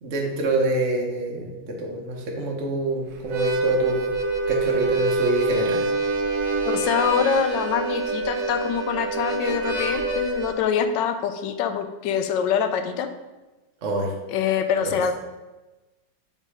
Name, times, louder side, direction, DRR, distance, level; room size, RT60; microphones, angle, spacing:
voice 1, 0.0-4.0 4.5-5.8 13.8-14.1, right 2 dB, 45° right, -1 dB, 1.1 m, -26 dB
Harmonica, 3.2-10.6, right 2 dB, 75° right, 1.4 m, -25 dB
voice 2, 6.6-13.1 14.3-15.1, left 8 dB, 80° left, 8 dB, 1.2 m, -25 dB
5.4 x 4.0 x 4.7 m, 1.1 s
omnidirectional pair, 2.0 m